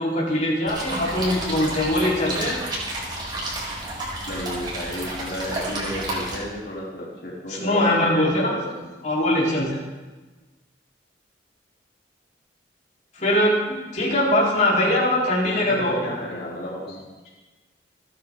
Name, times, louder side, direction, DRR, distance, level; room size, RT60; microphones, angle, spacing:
voice 1, 0.0-2.6 7.5-8.6 9.0-9.8 13.1-16.0, left 1 dB, 45° left, -5 dB, 4.1 m, -22 dB
sound 1, 0.7-6.4, right 1 dB, 25° right, 5.1 m, -31 dB
voice 2, 4.3-8.9 15.4-17.0, left 1 dB, 60° left, -5 dB, 3.6 m, -33 dB
29.0 x 10.5 x 3.8 m, 1.2 s
head